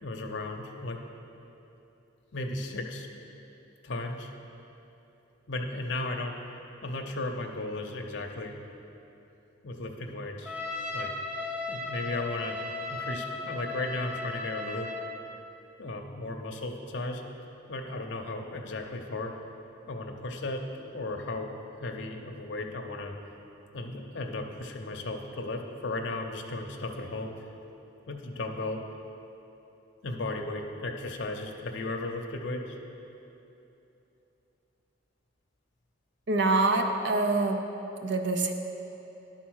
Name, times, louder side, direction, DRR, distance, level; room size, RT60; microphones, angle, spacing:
voice 1, 0.0-1.0 2.3-3.1 3.8-4.3 5.5-6.4 6.8-8.5 9.6-10.6 10.9-11.1 11.7-12.6 12.9-14.9 15.8-17.2 17.7-19.3 19.9-21.6 21.8-23.1 23.7-27.3 28.1-28.8 30.0-32.8, left 2 dB, 60° left, 2 dB, 0.7 m, -35 dB
Trumpet, 10.5-15.2, left 2 dB, 10° right, 0.5 m, -36 dB
voice 2, 36.3-37.6 38.0-38.5, right 3 dB, 60° right, 5 dB, 0.5 m, -25 dB
10.0 x 4.0 x 6.3 m, 3.0 s
head